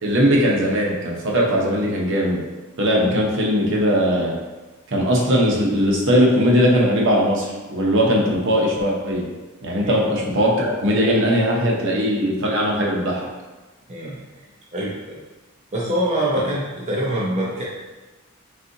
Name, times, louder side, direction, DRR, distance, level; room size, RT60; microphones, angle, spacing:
voice 1, 0.0-2.4 2.8-4.4 4.9-9.2 9.6-13.3, equal, 60° right, -2 dB, 0.9 m, -19 dB
voice 2, 13.9-14.4 14.7-15.2 15.7-17.6, right 1 dB, 35° right, -5 dB, 0.6 m, -25 dB
4.0 x 3.7 x 2.7 m, 1.2 s
head